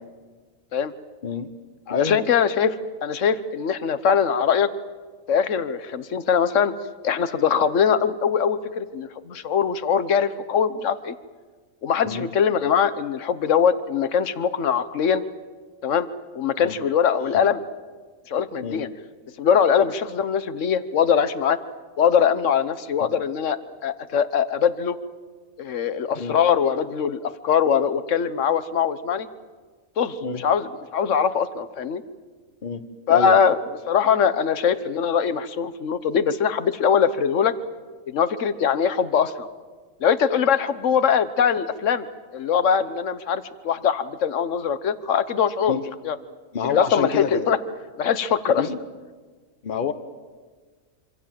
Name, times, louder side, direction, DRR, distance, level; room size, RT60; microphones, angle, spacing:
voice 1, 1.9-2.7 3.0-4.7 5.3-6.7 7.0-11.1 11.8-15.2 15.8-16.1 16.3-17.6 18.3-18.9 19.4-21.6 22.0-25.0 25.6-29.3 30.0-32.0 33.1-33.6 33.9-37.5 38.1-39.5 40.0-42.1 42.3-46.2 46.8-47.6 48.0-48.7, left 7 dB, 65° left, 13 dB, 1.4 m, -22 dB
voice 2, 46.5-47.5 48.5-48.8 49.6-49.9, left 6 dB, 40° left, 10 dB, 1.3 m, -28 dB
26.5 x 25.5 x 7.6 m, 1.4 s
omnidirectional pair, 1.4 m